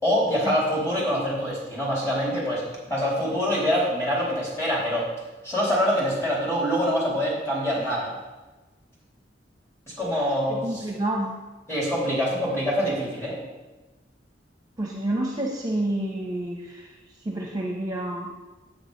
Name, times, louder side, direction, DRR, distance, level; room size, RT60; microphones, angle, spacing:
voice 1, 0.0-5.1 5.4-8.1 10.0-10.9 11.7-13.4, equal, 15° left, -6 dB, 4.1 m, -25 dB
voice 2, 10.5-11.3 14.8-16.9 17.2-18.3, right 1 dB, 20° right, -1 dB, 1.0 m, -29 dB
9.0 x 8.6 x 5.2 m, 1.2 s
head